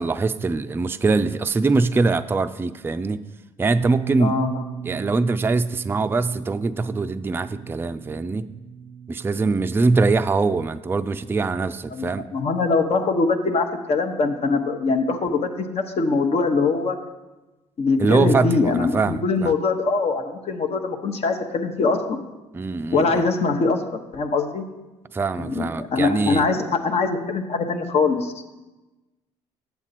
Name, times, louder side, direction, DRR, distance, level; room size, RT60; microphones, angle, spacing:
voice 1, 0.0-3.2 3.6-4.4 4.8-8.5 9.1-12.3 18.0-19.5 22.5-23.2 25.1-26.4, right 3 dB, 15° right, 10 dB, 0.4 m, -23 dB
Bass guitar, 3.8-10.0, right 7 dB, 70° left, 1.7 m, -35 dB
voice 2, 4.2-4.6 11.9-17.0 17.8-22.2 22.9-24.6 25.4-28.4, left 4 dB, 50° left, 5 dB, 1.0 m, -22 dB
8.1 x 7.3 x 4.1 m, 1.1 s
supercardioid pair, 70°, 13 cm